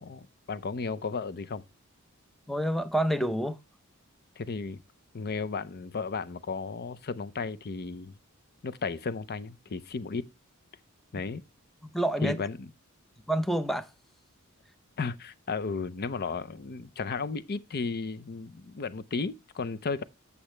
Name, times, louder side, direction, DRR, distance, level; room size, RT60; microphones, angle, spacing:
voice 1, 0.0-1.6 4.4-4.8 5.1-8.2 8.6-10.3 11.1-11.4 12.2-12.7 15.0-20.0, left 4 dB, 45° left, 0.6 m, -34 dB
voice 2, 2.5-3.6 11.8-12.5 13.3-13.9, right 1 dB, ahead, 0.6 m, -28 dB
8.4 x 7.1 x 3.2 m
head